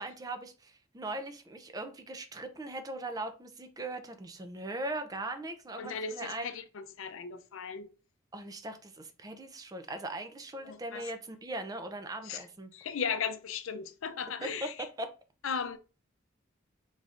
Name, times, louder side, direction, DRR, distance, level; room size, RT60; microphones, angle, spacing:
voice 1, 0.0-6.5 8.3-12.7 15.0-15.1, right 2 dB, 20° right, 0.4 m, -40 dB
voice 2, 5.8-7.9 10.6-11.1 12.2-12.5 12.7-14.9 15.4-15.8, left 6 dB, 80° left, 0.5 m, -37 dB
4.0 x 3.5 x 2.4 m
head